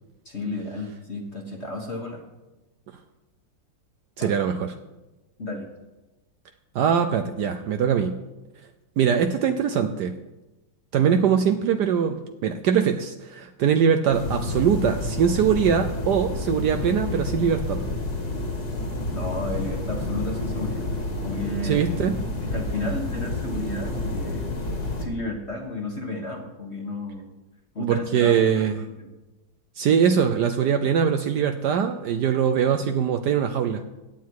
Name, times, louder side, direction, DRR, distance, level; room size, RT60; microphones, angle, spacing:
voice 1, 0.2-2.2 4.2-4.5 5.4-5.7 11.0-11.1 19.1-20.9 21.2-21.9 22.4-24.5 25.0-27.3 27.7-29.1, left 2 dB, 40° left, 1 dB, 1.6 m, -33 dB
voice 2, 4.2-4.6 6.7-8.2 9.0-10.2 10.9-17.8 21.6-22.2 27.8-28.8 29.8-33.8, right 7 dB, 70° right, 7 dB, 1.2 m, -22 dB
sound 1, 14.1-25.1, left 2 dB, 55° left, 2.7 m, -29 dB
16.5 x 9.4 x 4.7 m, 1.1 s
omnidirectional pair, 2.0 m